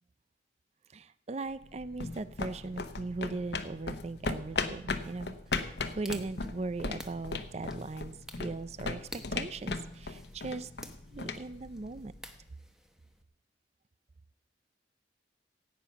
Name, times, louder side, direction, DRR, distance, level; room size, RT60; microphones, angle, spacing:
voice 1, 0.9-10.7 11.1-12.1, right 3 dB, 35° right, 15 dB, 0.5 m, -39 dB
sound 1, 1.5-12.3, left 4 dB, 65° left, 1.0 m, -38 dB
sound 2, 5.5-13.2, equal, 5° right, 1.0 m, -52 dB
16.5 x 9.1 x 5.7 m, 0.74 s
head